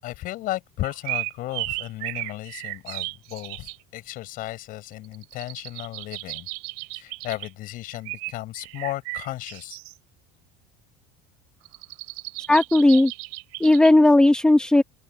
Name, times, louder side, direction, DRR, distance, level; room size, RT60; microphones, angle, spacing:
voice 1, 0.0-6.5 7.0-9.8, left 16 dB, 50° left, 6.5 m, -34 dB
sound 1, 0.8-3.8 4.9-7.5 7.9-9.9 11.7-13.9, right 31 dB, 85° right, 4.4 m, -35 dB
voice 2, 12.5-13.1 13.6-14.8, left 2 dB, 5° left, 1.2 m, -16 dB
open air
cardioid pair, 160°, 19 cm